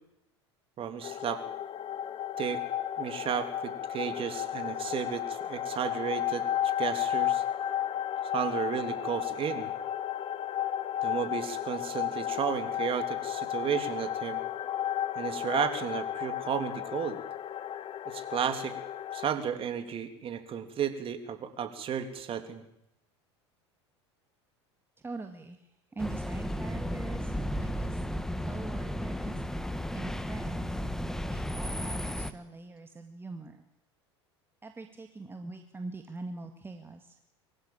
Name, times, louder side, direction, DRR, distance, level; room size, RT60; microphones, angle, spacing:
voice 1, 0.8-1.4 2.4-2.6 3.0-6.5 6.8-7.4 8.3-9.7 11.0-14.4 15.2-17.2 18.0-18.7 19.1-22.6, right 8 dB, 40° right, 8 dB, 3.2 m, -33 dB
sound 1, 1.0-19.3, left 11 dB, 35° left, 1.0 m, -33 dB
voice 2, 25.0-25.7 25.9-28.0 28.5-29.6 29.9-30.8 31.3-33.6 34.6-37.2, right 3 dB, 15° right, 5 dB, 2.0 m, -43 dB
sound 2, 26.0-32.3, equal, 5° left, 1.4 m, -34 dB
24.0 x 15.0 x 9.0 m, 0.79 s
hypercardioid pair, 80°, 15 cm